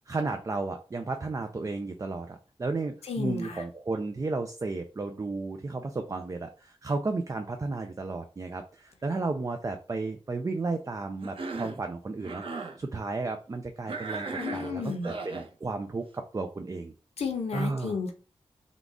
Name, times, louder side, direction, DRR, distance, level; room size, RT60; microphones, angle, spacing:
voice 1, 0.1-16.9 17.5-18.0, right 3 dB, 30° right, 6 dB, 0.5 m, -33 dB
voice 2, 3.1-3.6 14.4-15.1 17.2-18.1, left 5 dB, 75° left, 4 dB, 0.8 m, -32 dB
Cough, 11.2-11.8 12.2-12.8 13.9-15.5, right 3 dB, 60° right, 0.8 m, -37 dB
3.7 x 2.4 x 3.6 m, 0.36 s
cardioid pair, 70°, 11 cm